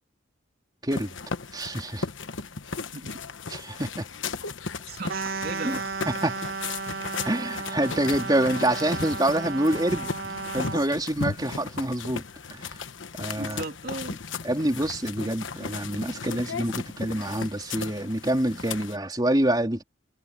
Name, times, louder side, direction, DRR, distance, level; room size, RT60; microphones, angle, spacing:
sound 1, 0.9-19.0, left 4 dB, 70° left, 1.2 m, -36 dB
voice 1, 1.5-2.1 3.5-4.1 5.6-5.8 6.1-6.4 7.2-12.2 12.5-12.8 13.2-13.6 14.4-19.8, right 1 dB, 20° right, 3.6 m, -26 dB
voice 2, 4.9-5.9 13.3-14.2, right 2 dB, 50° right, 3.4 m, -37 dB
sound 2, 5.1-10.9, right 4 dB, 85° right, 1.8 m, -34 dB
head